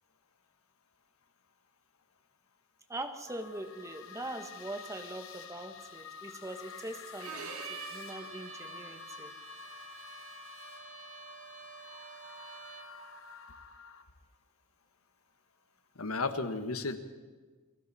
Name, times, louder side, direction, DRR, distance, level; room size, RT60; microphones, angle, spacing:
voice 1, 2.9-9.3, right 1 dB, 15° right, 7 dB, 1.5 m, -42 dB
sound 1, 3.3-14.0, left 6 dB, 65° left, 1.5 m, -49 dB
Bowed string instrument, 7.2-13.0, right 5 dB, 85° right, 2.5 m, -47 dB
voice 2, 15.9-17.0, left 3 dB, 85° left, 9 dB, 1.5 m, -33 dB
28.5 x 21.5 x 4.3 m, 1.4 s
head